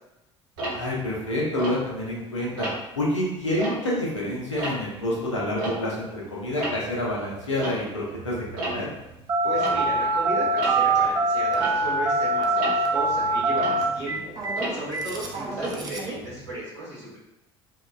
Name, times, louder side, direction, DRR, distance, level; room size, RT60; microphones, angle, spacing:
Tick-tock, 0.6-2.2 2.6-3.0 3.4-6.2 6.4-16.5, right 1 dB, 65° right, 0.9 m, -35 dB
voice 1, 0.7-2.7 3.0-8.9, left 1 dB, 85° left, -4 dB, 0.5 m, -28 dB
Telephone, 9.3-16.2, right 2 dB, 25° right, 0.5 m, -24 dB
voice 2, 9.4-14.3 14.7-17.2, right 1 dB, 85° right, -9 dB, 1.1 m, -35 dB
2.9 x 2.1 x 2.3 m, 0.94 s
figure-of-eight pair, 60°, 15 cm